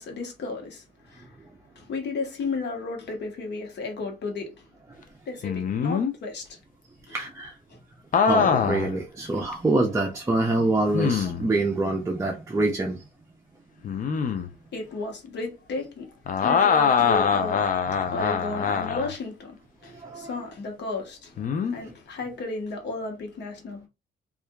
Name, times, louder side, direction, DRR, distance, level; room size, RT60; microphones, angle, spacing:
voice 1, 0.0-1.4 1.7-4.7 5.3-6.6 7.1-7.2 7.7-7.8 14.7-17.6 18.1-21.4 21.7-23.9, left 3 dB, 60° left, 1.1 m, -34 dB
sound 1, 5.4-6.1 8.1-8.9 9.5-9.6 10.9-11.5 13.8-14.5 16.3-19.2 21.4-21.7, left 6 dB, 45° left, 0.5 m, -23 dB
voice 2, 7.1-7.5 8.2-13.0 19.9-20.4, right 2 dB, 15° right, 0.5 m, -25 dB
2.7 x 2.4 x 2.2 m
cardioid pair, 90°, 20 cm